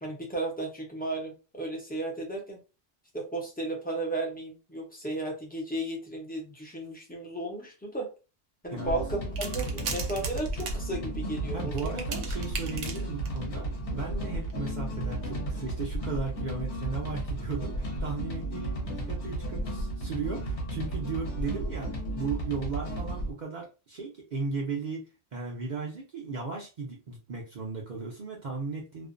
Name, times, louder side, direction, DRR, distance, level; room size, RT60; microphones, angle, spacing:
voice 1, 0.0-2.6 3.1-8.1 8.6-11.9, right 2 dB, 10° left, -2 dB, 0.4 m, -34 dB
sound 1, 8.8-23.3, right 1 dB, 65° left, 1.0 m, -34 dB
sound 2, 9.4-10.8 11.8-13.4 14.4-14.5, right 5 dB, 70° right, 0.9 m, -38 dB
voice 2, 11.5-29.1, right 4 dB, 55° right, -2 dB, 0.5 m, -36 dB
2.5 x 2.1 x 2.4 m, 0.31 s
omnidirectional pair, 1.3 m